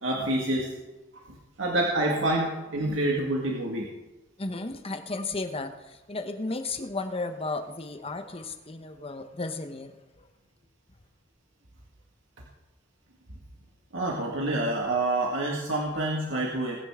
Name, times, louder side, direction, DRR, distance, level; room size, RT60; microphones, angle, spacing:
voice 1, 0.0-0.7 1.3-3.9 13.9-16.8, right 1 dB, 80° right, -2 dB, 1.9 m, -27 dB
voice 2, 4.4-9.9, left 3 dB, 30° left, 8 dB, 1.0 m, -34 dB
20.5 x 9.9 x 3.7 m, 1.1 s
head